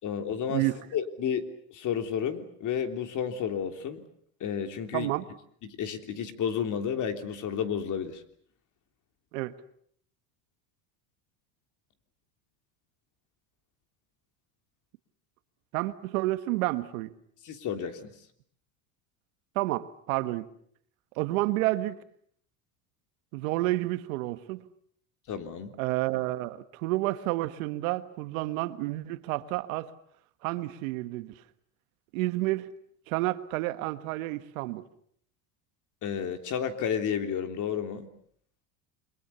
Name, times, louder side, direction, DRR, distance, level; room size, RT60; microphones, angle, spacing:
voice 1, 0.0-0.7 0.9-1.5 1.7-4.0 4.4-5.1 5.6-8.2 17.4-18.1 25.3-25.7 36.0-38.1, left 8 dB, 45° left, 7 dB, 3.4 m, -31 dB
voice 2, 4.9-5.2 9.3-9.6 15.7-17.1 19.5-20.5 21.2-22.0 23.3-24.6 25.8-29.9 30.4-31.3 32.1-32.7 33.1-34.8, right 18 dB, 80° right, 11 dB, 1.7 m, -30 dB
29.5 x 23.0 x 7.1 m, 0.64 s
supercardioid pair, 115°, 41 cm